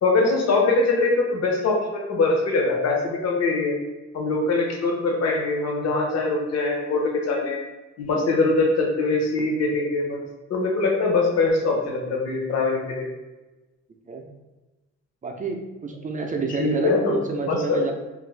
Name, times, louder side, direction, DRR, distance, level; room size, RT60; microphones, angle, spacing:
voice 1, 0.0-3.8 4.1-7.6 8.0-10.2 10.5-13.1 16.6-17.1 17.5-17.9, left 3 dB, 60° left, 0 dB, 0.8 m, -22 dB
voice 2, 15.2-17.9, right 4 dB, 25° right, 2 dB, 0.5 m, -29 dB
2.9 x 2.5 x 3.2 m, 1.1 s
cardioid pair, 90°, 30 cm